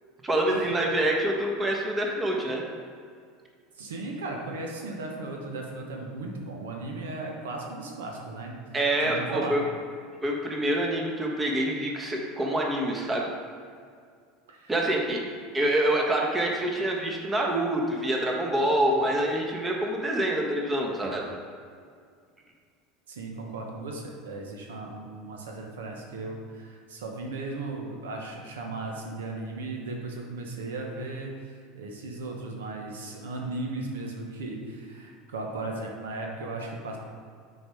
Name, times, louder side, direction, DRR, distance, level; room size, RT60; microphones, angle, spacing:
voice 1, 0.2-2.6 8.7-9.6 10.2-13.3 14.7-15.2 15.5-21.3, right 1 dB, 20° right, 0 dB, 1.3 m, -26 dB
voice 2, 3.8-8.5 9.0-9.6 14.5-14.7 15.1-15.2 23.1-37.0, right 2 dB, 85° right, 0 dB, 1.1 m, -36 dB
6.3 x 4.7 x 4.9 m, 2.1 s
hypercardioid pair, 90°, 0 cm